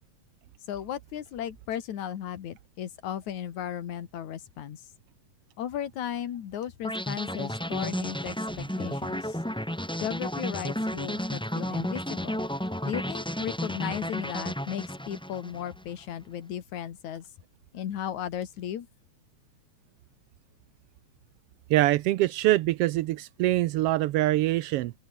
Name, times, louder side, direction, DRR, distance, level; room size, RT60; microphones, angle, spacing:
voice 1, 0.7-4.8 5.6-9.4 10.0-12.4 12.8-17.2 17.7-18.9, left 10 dB, 75° left, 3.1 m, -35 dB
sound 1, 6.8-15.9, equal, ahead, 1.2 m, -32 dB
voice 2, 21.7-24.9, right 16 dB, 90° right, 1.3 m, -24 dB
open air
omnidirectional pair, 3.4 m